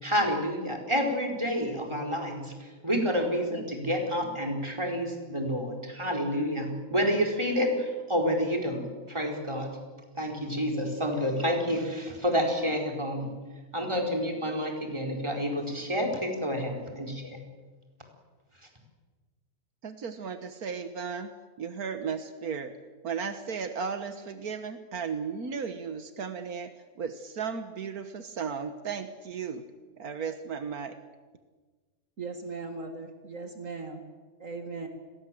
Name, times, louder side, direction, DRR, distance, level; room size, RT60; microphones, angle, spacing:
voice 1, 0.0-9.7 10.1-13.3 13.7-17.4, equal, 20° right, 2 dB, 4.5 m, -29 dB
voice 2, 19.8-21.3 21.6-22.7 23.0-29.6 30.0-31.0, right 6 dB, 80° right, 9 dB, 1.8 m, -35 dB
voice 3, 32.2-34.0 34.4-34.9, right 3 dB, 60° right, 5 dB, 2.5 m, -38 dB
30.0 x 22.0 x 7.7 m, 1.4 s
omnidirectional pair, 1.5 m